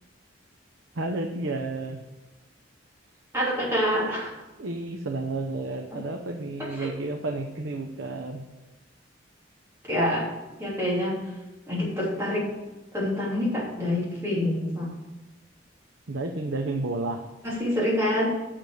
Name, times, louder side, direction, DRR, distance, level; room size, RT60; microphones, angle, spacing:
voice 1, 0.9-2.0 4.6-8.4 16.1-17.2, right 2 dB, 80° right, 3 dB, 0.8 m, -31 dB
voice 2, 3.3-4.3 5.9-6.0 6.6-6.9 9.8-10.3 10.6-11.3 11.7-12.5 12.9-14.9 17.4-18.4, left 1 dB, 15° right, -6 dB, 2.9 m, -26 dB
7.4 x 6.8 x 6.0 m, 1.1 s
head